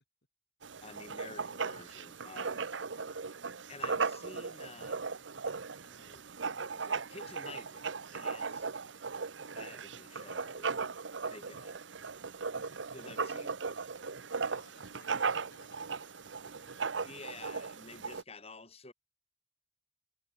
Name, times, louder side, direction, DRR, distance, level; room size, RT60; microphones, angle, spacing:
Writing, 0.6-18.2, right 5 dB, 75° right, 1.0 m, -37 dB
voice 1, 0.8-2.6 3.0-3.3 3.7-5.1 5.8-6.2 6.6-8.7 9.5-10.7 11.3-11.8 12.9-13.6 17.0-18.9, left 3 dB, 30° left, 4.8 m, -51 dB
voice 2, 14.5-16.8, left 3 dB, 60° left, 7.1 m, -63 dB
head